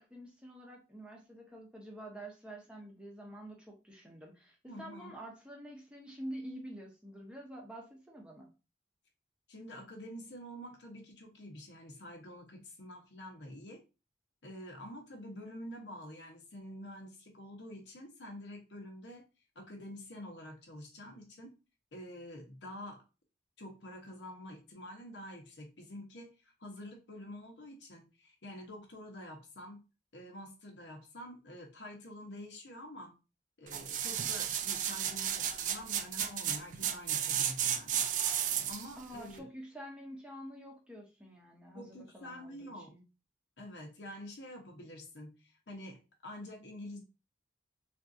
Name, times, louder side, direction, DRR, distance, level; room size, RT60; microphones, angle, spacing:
voice 1, 0.0-8.5 39.0-43.0, right 1 dB, 5° right, -1 dB, 0.7 m, -47 dB
voice 2, 4.7-5.1 9.5-13.8 14.4-19.2 19.5-21.6 21.9-23.0 23.6-29.8 30.1-33.2 33.6-38.1 38.7-39.5 41.7-42.9 43.6-47.0, left 1 dB, 85° left, 2 dB, 0.9 m, -47 dB
sound 1, 33.7-38.9 39.4-39.5, right 9 dB, 45° right, 0.3 m, -33 dB
3.6 x 2.6 x 2.6 m, 0.30 s
head